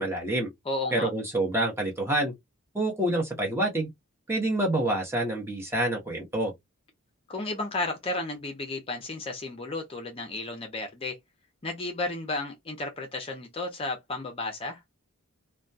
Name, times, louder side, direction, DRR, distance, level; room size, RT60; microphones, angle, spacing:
voice 1, 0.0-0.5 0.9-2.3 2.7-3.9 4.3-6.5, right 1 dB, 10° right, 0.7 m, -27 dB
voice 2, 0.7-1.1 7.3-11.2 11.6-14.8, left 2 dB, 25° left, 0.5 m, -33 dB
2.2 x 2.2 x 2.6 m
head